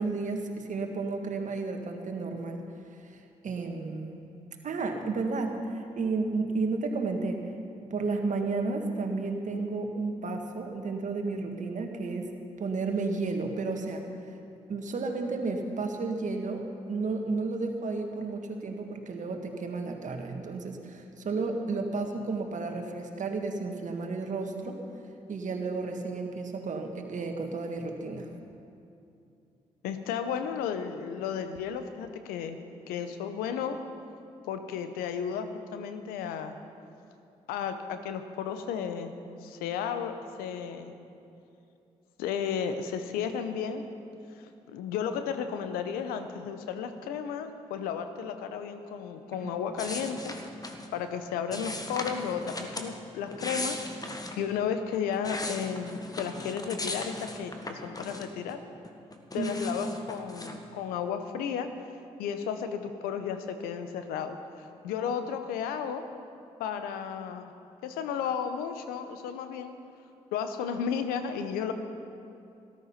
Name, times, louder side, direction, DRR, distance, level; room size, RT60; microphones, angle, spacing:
voice 1, 0.0-2.6 3.1-4.2 4.6-7.4 7.9-12.3 12.6-14.0 14.7-24.8 25.3-28.3 49.4-49.5 59.3-59.5, right 3 dB, 55° right, 4 dB, 1.7 m, -32 dB
voice 2, 29.8-32.6 32.9-33.8 34.5-36.5 37.5-39.1 39.4-40.1 40.4-40.9 42.2-43.8 44.3-50.3 50.9-58.6 59.3-61.7 62.2-66.0 66.6-67.5 67.8-69.8 70.3-71.7, left 7 dB, 85° left, 8 dB, 0.8 m, -33 dB
sound 1, 49.8-50.9 51.5-52.9 53.3-54.4 54.9-58.5 58.8-60.6, left 2 dB, 25° left, 1.6 m, -38 dB
13.5 x 12.5 x 5.7 m, 2.6 s
hypercardioid pair, 45°, 15 cm